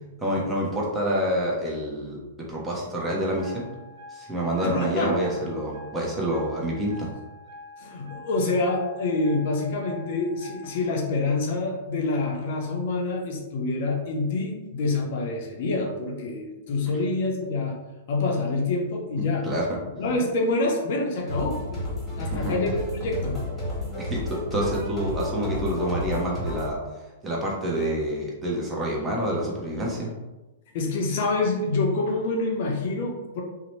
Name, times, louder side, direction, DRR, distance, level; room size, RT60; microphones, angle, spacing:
voice 1, 0.2-2.2 2.5-3.7 4.1-7.1 19.4-19.6 22.2-22.6 24.0-26.8 27.2-30.1, right 1 dB, 15° right, -4 dB, 0.6 m, -27 dB
sound 1, 3.4-11.0, left 2 dB, 85° left, 0.8 m, -46 dB
voice 2, 4.6-5.2 7.8-17.8 18.1-19.5 20.0-23.5 30.7-33.4, left 3 dB, 55° left, 0 dB, 0.6 m, -27 dB
sound 2, 21.3-26.7, left 1 dB, 5° left, 1.3 m, -31 dB
sound 3, 24.6-26.8, right 2 dB, 55° right, 0.5 m, -46 dB
2.7 x 2.1 x 3.0 m, 1.1 s
hypercardioid pair, 145°, 0 cm